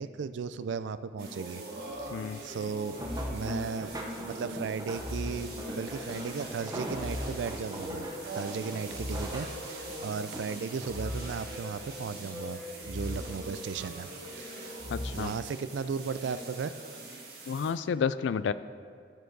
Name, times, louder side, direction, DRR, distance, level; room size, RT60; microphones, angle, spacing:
voice 1, 0.0-1.6 2.0-2.1 2.4-3.0 3.3-3.9 4.2-8.1 8.3-14.1 14.4-14.8 15.1-16.8, right 5 dB, 80° right, 14 dB, 0.3 m, -36 dB
sound 1, 1.2-17.7, right 1 dB, 55° right, 1.7 m, -42 dB
sound 2, 1.9-2.3 3.0-4.3 5.0-6.2 6.9-8.2 8.9-10.2 10.9-12.2 12.8-14.1 14.8-15.1, left 1 dB, 25° left, 0.5 m, -40 dB
voice 2, 2.1-2.4 14.9-15.3 17.5-18.5, left 6 dB, 80° left, 14 dB, 0.3 m, -30 dB
sound 3, 2.8-12.3 12.6-13.6 14.0-15.3 16.0-16.3 16.8-16.9, right 1 dB, 20° right, 0.7 m, -43 dB
13.0 x 4.5 x 4.7 m, 2.2 s
head